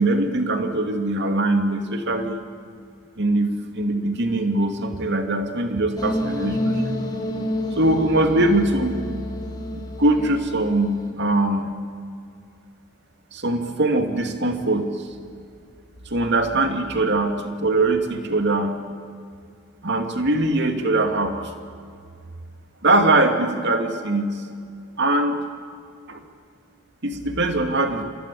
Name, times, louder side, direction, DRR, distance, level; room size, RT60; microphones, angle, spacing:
voice 1, 0.0-2.4 3.2-6.8 7.8-9.0 9.7-11.7 13.3-14.9 16.1-18.8 19.8-21.4 22.8-24.4 25.0-25.4 26.1-26.2 27.0-28.0, right 2 dB, 50° right, 5 dB, 2.6 m, -22 dB
sound 1, 6.0-11.1, left 1 dB, 20° left, 2.7 m, -29 dB
28.5 x 24.0 x 8.6 m, 2.3 s
head